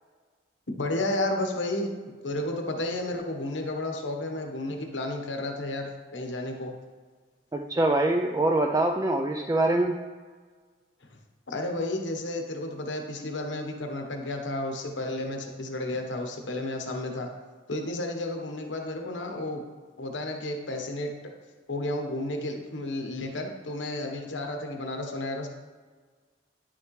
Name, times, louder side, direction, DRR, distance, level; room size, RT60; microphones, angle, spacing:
voice 1, 0.8-1.9 2.2-6.7 11.5-17.3 17.7-19.6 20.0-21.1 21.7-25.5, left 1 dB, 90° left, 3 dB, 1.1 m, -32 dB
voice 2, 7.5-9.9, right 2 dB, 20° right, 3 dB, 0.3 m, -24 dB
10.0 x 6.3 x 3.2 m, 1.5 s
head